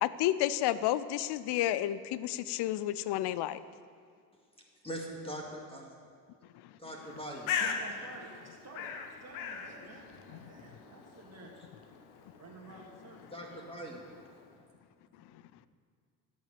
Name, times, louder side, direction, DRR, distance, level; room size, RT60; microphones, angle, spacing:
voice 1, 0.0-3.6, left 13 dB, 55° left, 16 dB, 0.6 m, -31 dB
voice 2, 4.8-6.0 6.8-7.6 13.3-14.2, equal, 10° left, -1 dB, 2.1 m, -42 dB
Bird, 7.0-14.6, left 6 dB, 70° left, 1.2 m, -41 dB
voice 3, 7.5-8.9 9.2-11.5 12.3-13.7, right 3 dB, 30° right, -1 dB, 2.0 m, -51 dB
11.5 x 7.5 x 6.9 m, 2.2 s
hypercardioid pair, 60°, 49 cm